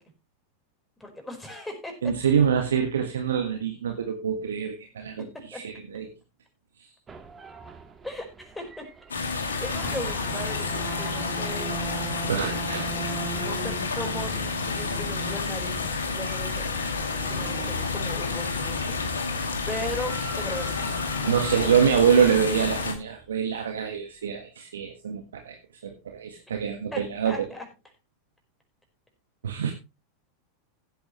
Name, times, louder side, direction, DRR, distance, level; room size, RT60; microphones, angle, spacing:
voice 1, 1.0-1.9 5.5-5.6 8.0-8.9 9.2-11.8 12.9-13.0 13.3-16.7 17.3-18.9 19.7-20.8 26.9-27.7, left 1 dB, 5° left, 3 dB, 4.8 m, -37 dB
voice 2, 2.0-6.1 12.3-12.9 21.2-25.6 25.8-27.4 29.4-29.7, right 7 dB, 75° right, 4 dB, 1.5 m, -25 dB
sound 1, 7.1-18.9 19.7-22.4, right 6 dB, 20° right, 1.9 m, -41 dB
sound 2, 9.1-22.9, left 4 dB, 80° left, 2.5 m, -30 dB
15.5 x 8.7 x 3.2 m, 0.27 s
figure-of-eight pair, 90°, 0 cm